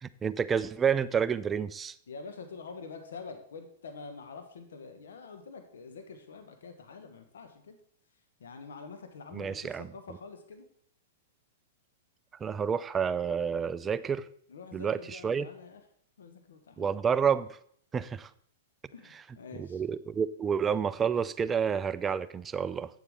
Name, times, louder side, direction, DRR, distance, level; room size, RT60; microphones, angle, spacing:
voice 1, 0.0-1.9 9.3-9.9 12.4-14.3 14.7-15.5 16.8-17.5 17.9-18.3 19.1-19.2 19.6-22.9, right 7 dB, 20° right, 15 dB, 0.4 m, -29 dB
voice 2, 2.1-7.8 8.4-10.7 14.5-15.8 16.2-16.9 18.9-19.8, left 4 dB, 85° left, 6 dB, 1.1 m, -46 dB
8.1 x 7.3 x 3.6 m, 0.64 s
hypercardioid pair, 130°, 0 cm